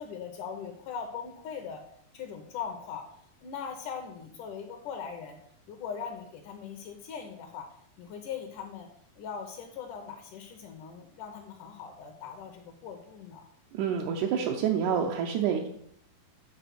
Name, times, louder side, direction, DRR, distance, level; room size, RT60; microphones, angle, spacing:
voice 1, 0.0-1.8 2.1-3.1 3.4-5.4 5.7-7.7 8.0-8.9 9.2-13.5, left 6 dB, 75° left, 4 dB, 2.1 m, -40 dB
voice 2, 13.7-15.7, right 8 dB, 80° right, 1 dB, 1.8 m, -28 dB
9.2 x 4.3 x 5.9 m, 0.70 s
omnidirectional pair, 4.2 m